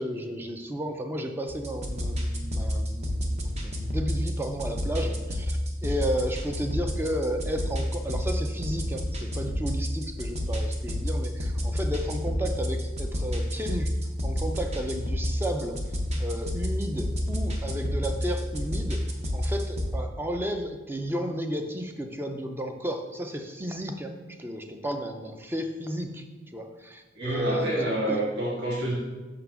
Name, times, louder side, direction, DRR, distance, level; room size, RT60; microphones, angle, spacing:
voice 1, 0.0-13.9 14.2-15.8 16.2-19.0 19.3-24.1 24.4-26.2 26.5-28.2, equal, 10° right, 5 dB, 0.4 m, -33 dB
sound 1, 1.5-19.9, equal, 35° right, 0.8 m, -30 dB
voice 2, 27.1-28.9, right 1 dB, 55° right, -6 dB, 1.4 m, -28 dB
5.6 x 3.8 x 5.8 m, 1.2 s
head